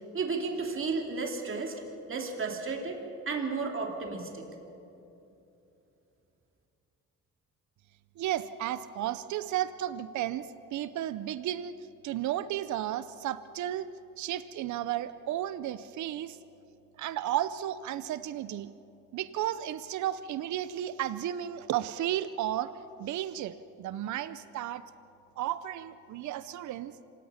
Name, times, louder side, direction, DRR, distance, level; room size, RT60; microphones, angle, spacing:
voice 1, 0.1-1.8 2.1-3.0 3.3-4.5, right 4 dB, 45° right, 2 dB, 3.0 m, -33 dB
voice 2, 8.2-13.9 14.2-16.4 17.0-18.7 19.1-22.7 23.0-24.8 25.4-27.0, right 12 dB, 70° right, 14 dB, 0.7 m, -33 dB
26.5 x 18.0 x 5.8 m, 2.8 s
cardioid pair, 90°, 30 cm